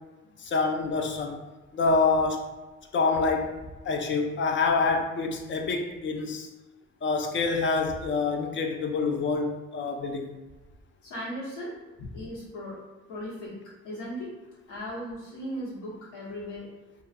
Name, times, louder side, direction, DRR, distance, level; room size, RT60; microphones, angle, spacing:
voice 1, 0.4-1.4 1.7-2.5 2.9-3.6 3.9-6.5 7.0-10.3, left 4 dB, 40° left, 3 dB, 0.4 m, -26 dB
voice 2, 11.0-11.7 12.1-12.8 13.1-14.3 14.7-16.7, equal, 85° left, -7 dB, 1.2 m, -37 dB
2.5 x 2.3 x 2.5 m, 1.2 s
cardioid pair, 90°, 30 cm